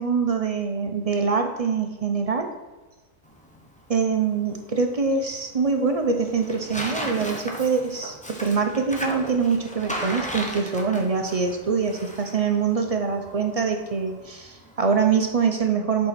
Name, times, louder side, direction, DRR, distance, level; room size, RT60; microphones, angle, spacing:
voice 1, 0.0-2.5 3.9-16.1, right 5 dB, 40° right, 5 dB, 0.5 m, -24 dB
Tearing, 3.2-15.5, equal, 5° left, 0.7 m, -37 dB
7.8 x 4.7 x 4.3 m, 1.2 s
omnidirectional pair, 1.4 m